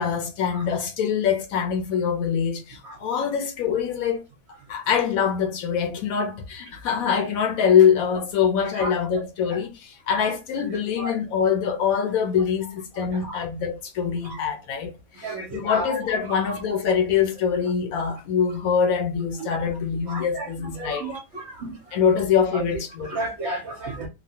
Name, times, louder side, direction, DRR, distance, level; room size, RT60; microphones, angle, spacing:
voice 1, 0.0-4.2 4.7-14.9 15.2-21.1 21.9-23.2, left 7 dB, 65° left, 1.1 m, -24 dB
voice 2, 10.7-11.1 13.3-13.4 15.2-15.8 20.1-20.4 20.8-21.7 23.1-24.1, right 2 dB, 55° right, 0.9 m, -32 dB
2.9 x 2.3 x 2.7 m
omnidirectional pair, 1.7 m